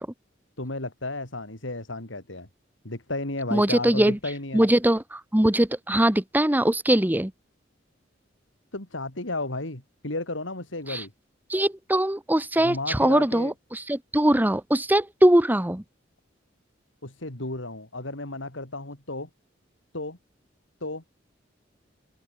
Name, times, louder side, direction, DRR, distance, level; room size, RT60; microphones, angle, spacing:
voice 1, 0.6-2.5 2.8-4.6 8.7-11.1 12.6-13.5 17.0-19.3 19.9-20.2 20.8-21.0, left 2 dB, 85° left, 4.0 m, -33 dB
voice 2, 3.5-4.2 4.5-7.3 10.9-11.0 11.5-15.8, right 1 dB, 10° right, 1.1 m, -21 dB
head